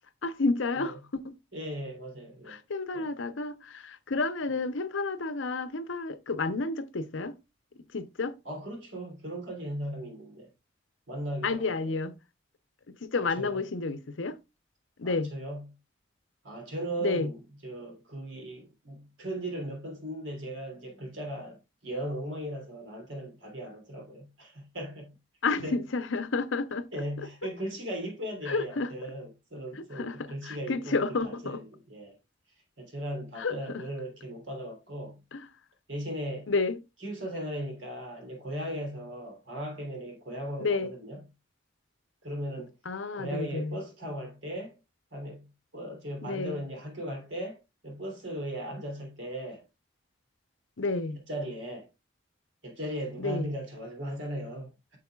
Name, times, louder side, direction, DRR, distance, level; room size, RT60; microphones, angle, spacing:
voice 1, 0.2-1.3 2.5-7.4 7.9-8.4 11.4-12.2 12.9-14.4 15.0-15.3 17.0-17.3 25.4-26.9 28.5-28.9 29.8-31.6 33.4-33.9 35.3-35.5 36.5-36.8 40.6-40.9 42.9-43.8 46.2-46.6 50.8-51.2 53.2-53.5, left 3 dB, 90° left, 0.8 m, -31 dB
voice 2, 1.5-2.6 2.9-3.1 8.4-10.5 11.1-11.9 13.1-13.6 15.0-15.7 16.4-25.1 25.6-25.8 26.9-32.2 32.8-35.2 35.9-36.5 37.0-41.2 42.2-42.7 43.1-44.8 45.1-45.4 45.7-49.6 51.3-51.9 52.6-55.0, right 1 dB, 80° right, 3.2 m, -37 dB
8.4 x 6.4 x 2.3 m
head